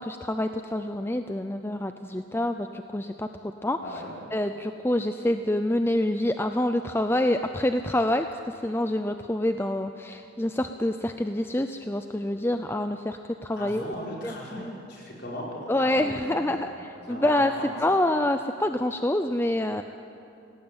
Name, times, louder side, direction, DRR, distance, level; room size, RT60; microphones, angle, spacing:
voice 1, 0.0-2.7 2.9-3.3 3.6-3.8 4.3-8.3 8.6-13.8 14.2-14.7 15.7-17.5 17.8-19.8, left 1 dB, 10° left, 7 dB, 0.5 m, -26 dB
voice 2, 3.8-4.1 13.6-16.8 17.1-17.9, equal, 50° left, -3 dB, 5.8 m, -37 dB
27.0 x 18.0 x 8.8 m, 2.7 s
head